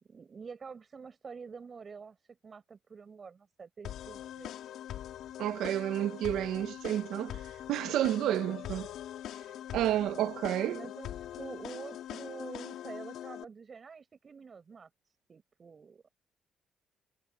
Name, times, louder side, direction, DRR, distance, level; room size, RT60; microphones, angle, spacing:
voice 1, 0.0-2.2 2.4-4.5 10.5-14.9 15.3-16.0, right 5 dB, 40° right, 7.1 m, -47 dB
sound 1, 3.8-13.4, left 11 dB, 80° left, 1.8 m, -42 dB
voice 2, 5.4-7.4 7.7-8.9 9.7-10.8, right 12 dB, 85° right, 0.6 m, -30 dB
cardioid pair, 90°, 0 cm